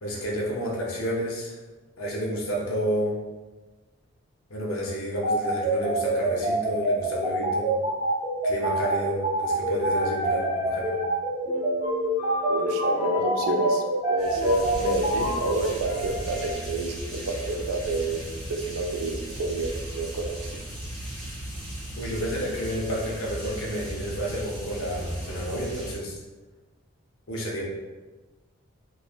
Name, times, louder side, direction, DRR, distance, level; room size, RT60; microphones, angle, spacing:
voice 1, 0.0-1.5 2.0-3.2 4.5-7.7 8.4-10.9 21.9-26.2 27.3-27.6, equal, 80° left, -3 dB, 0.7 m, -30 dB
sound 1, 5.2-15.1, right 2 dB, 25° right, 0.5 m, -26 dB
sound 2, 9.8-11.2 11.4-16.5, left 2 dB, 40° left, 0.5 m, -35 dB
voice 2, 12.5-13.8 14.1-20.6, right 2 dB, 85° right, 3 dB, 0.4 m, -29 dB
sound 3, 14.2-26.0, right 1 dB, ahead, 1.3 m, -37 dB
3.0 x 2.2 x 2.3 m, 1.2 s
head